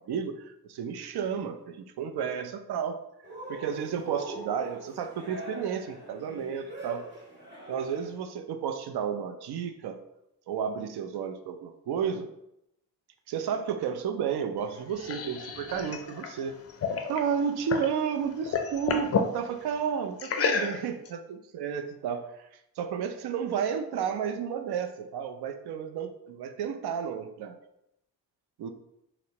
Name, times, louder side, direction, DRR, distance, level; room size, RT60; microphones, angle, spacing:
voice 1, 0.0-3.0 3.5-7.1 7.7-10.0 10.5-12.3 13.3-16.6 17.1-22.5 22.8-27.6 28.6-28.7, right 7 dB, 70° right, 7 dB, 0.5 m, -32 dB
Cheering, 3.2-8.2, right 2 dB, 25° right, 1.5 m, -42 dB
Drinking Soda, 14.6-18.0 18.3-19.3 20.2-21.1, left 5 dB, 40° left, 0.4 m, -30 dB
4.2 x 2.0 x 2.8 m, 0.81 s
cardioid pair, 70°, 41 cm